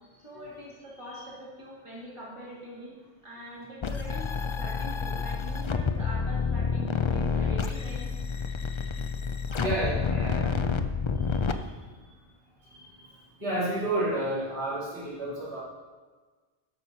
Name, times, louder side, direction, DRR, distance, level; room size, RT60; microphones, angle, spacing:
voice 1, 0.2-3.0 3.2-8.1 9.5-10.6 14.0-14.1, equal, 30° right, -5 dB, 2.7 m, -43 dB
sound 1, 3.8-11.5, left 5 dB, 45° left, 0.4 m, -29 dB
voice 2, 9.5-10.0 11.2-11.4 12.7-13.1 13.4-15.6, right 1 dB, 90° right, -9 dB, 4.1 m, -30 dB
12.0 x 5.8 x 5.5 m, 1.4 s
omnidirectional pair, 1.1 m